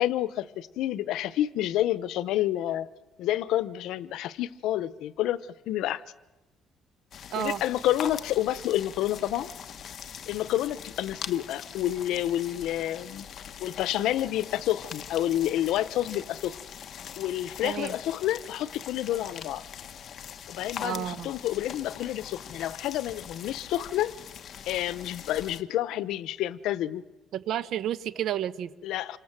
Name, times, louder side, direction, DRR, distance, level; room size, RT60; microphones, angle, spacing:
voice 1, 0.0-2.9 3.2-5.4 5.7-6.0 7.3-9.5 10.3-13.3 13.6-16.6 17.2-19.6 20.5-24.1 24.7-27.0 28.8-29.2, left 13 dB, 85° left, 0.9 m, -29 dB
sound 1, 7.1-25.6, left 8 dB, 45° left, 1.1 m, -42 dB
voice 2, 7.3-7.6 17.6-17.9 20.8-21.3 27.3-28.7, right 11 dB, 60° right, 1.1 m, -31 dB
27.5 x 26.0 x 7.6 m
cardioid pair, 165°, 0 cm